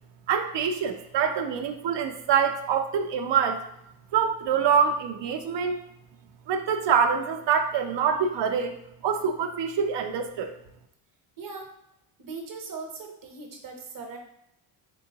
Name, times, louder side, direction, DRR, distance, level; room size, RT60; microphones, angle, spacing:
voice 1, 0.3-3.6 4.1-5.8 6.5-8.8 9.0-10.5, right 7 dB, 60° right, 6 dB, 0.7 m, -25 dB
voice 2, 11.4-11.7 12.2-14.2, right 4 dB, 40° right, 3 dB, 1.0 m, -39 dB
3.8 x 3.5 x 2.9 m, 0.80 s
cardioid pair, 85°, 49 cm